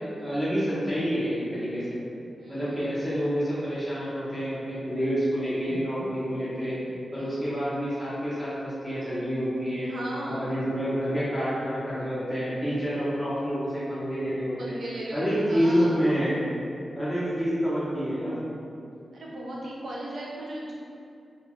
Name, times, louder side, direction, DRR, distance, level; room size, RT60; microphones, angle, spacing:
voice 1, 0.0-6.8 7.1-9.9 10.3-14.8 15.1-16.4 17.0-18.5, equal, ahead, -11 dB, 0.6 m, -28 dB
voice 2, 2.4-2.7 7.1-7.3 9.8-10.5 14.6-16.0 19.1-20.7, right 1 dB, 60° right, -5 dB, 0.6 m, -37 dB
2.8 x 2.2 x 2.9 m, 2.5 s
wide cardioid pair, 180°, 0 cm